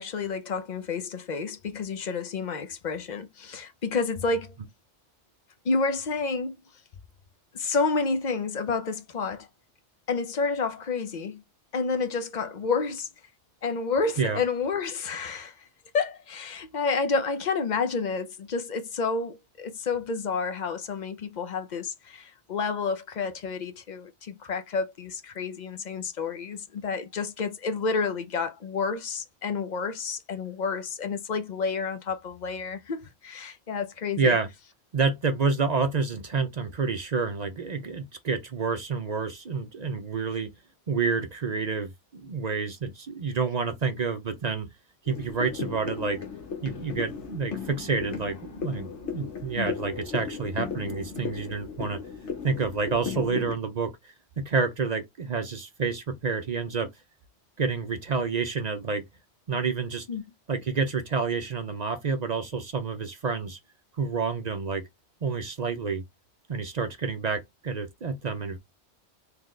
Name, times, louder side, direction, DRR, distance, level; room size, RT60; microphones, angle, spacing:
voice 1, 0.0-4.5 5.6-6.6 7.5-9.5 10.1-11.4 11.7-13.1 13.6-15.7 15.9-34.4 49.6-49.7 60.1-60.2, left 4 dB, 50° left, 0.6 m, -30 dB
voice 2, 34.2-34.5 34.9-40.5 40.9-44.7 45.1-46.2 46.6-52.0 52.4-56.9 57.6-59.0 59.5-60.1 60.5-63.6 64.0-64.8 65.2-66.0 66.5-68.6, right 5 dB, 45° right, 0.6 m, -29 dB
sound 1, 45.1-53.5, left 6 dB, 80° left, 1.3 m, -36 dB
3.9 x 2.8 x 3.1 m
omnidirectional pair, 1.2 m